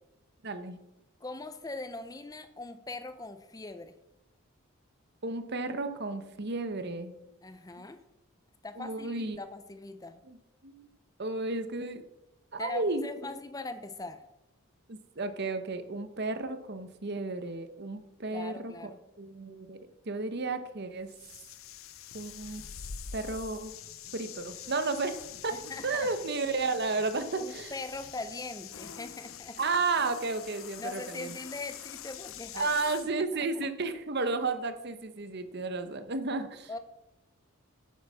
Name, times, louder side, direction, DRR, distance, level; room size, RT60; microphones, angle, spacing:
voice 1, 0.4-0.8 5.2-7.2 7.8-7.9 8.8-9.4 10.2-10.4 10.6-10.9 11.2-12.0 12.5-13.3 14.9-18.9 19.2-19.8 20.1-21.1 22.1-22.6 23.1-23.7 24.1-25.6 25.8-27.7 29.6-31.3 32.5-36.7, right 3 dB, 50° right, 10 dB, 1.0 m, -33 dB
voice 2, 1.2-4.0 7.4-8.0 8.6-10.2 12.6-14.2 18.3-19.0 25.5-26.1 27.4-29.6 30.8-32.7 33.6-33.7 36.7-36.8, left 2 dB, 15° left, 11 dB, 0.6 m, -41 dB
sound 1, 21.1-33.1, left 8 dB, 75° left, 0.8 m, -45 dB
9.5 x 8.0 x 6.3 m, 0.92 s
head